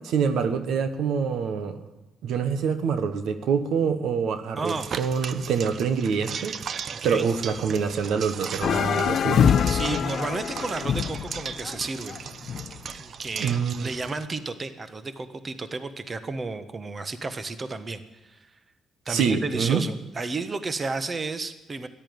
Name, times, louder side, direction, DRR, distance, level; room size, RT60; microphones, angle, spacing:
voice 1, 0.0-1.8 2.2-6.6 7.0-9.5 13.4-13.9 19.1-19.8, right 6 dB, 75° right, 10 dB, 1.3 m, -26 dB
voice 2, 4.6-4.9 7.0-7.3 9.6-12.6 12.9-18.5 19.0-21.9, right 3 dB, 35° right, 11 dB, 1.3 m, -32 dB
sound 1, 4.6-14.3, right 6 dB, 55° right, 0.7 m, -38 dB
sound 2, 8.6-12.9, left 8 dB, 60° left, 0.5 m, -24 dB
14.0 x 11.0 x 9.4 m, 1.1 s
cardioid pair, 90°, 0 cm